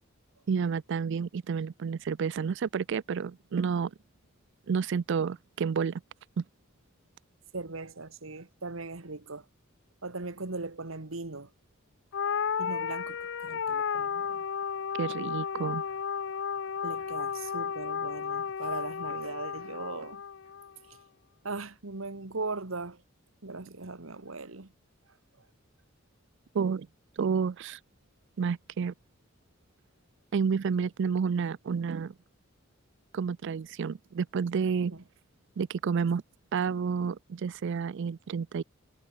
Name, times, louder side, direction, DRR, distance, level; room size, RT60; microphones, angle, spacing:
voice 1, 0.5-3.9 4.7-6.0 6.4-6.5 15.0-15.8 26.5-26.9 27.2-27.8 28.4-28.9 30.3-32.1 33.1-34.9 35.6-36.2 36.5-38.6, right 6 dB, 60° right, 0.4 m, -30 dB
voice 2, 7.5-9.5 10.0-11.5 12.6-14.4 16.8-20.2 21.4-23.0 23.4-24.7 34.9-35.0, right 3 dB, 75° right, 1.7 m, -39 dB
sound 1, 12.1-20.7, left 7 dB, 65° left, 0.6 m, -33 dB
head